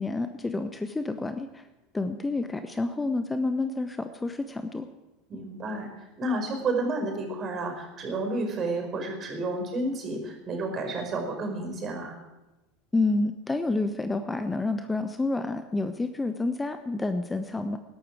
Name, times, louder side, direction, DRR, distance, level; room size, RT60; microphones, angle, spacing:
voice 1, 0.0-1.7 1.9-4.9 12.9-17.8, left 2 dB, 15° left, 9 dB, 0.9 m, -29 dB
voice 2, 5.3-5.9 6.2-12.2, right 2 dB, 35° right, 3 dB, 5.3 m, -31 dB
20.0 x 12.0 x 4.8 m, 1.0 s
hypercardioid pair, 80°, 0 cm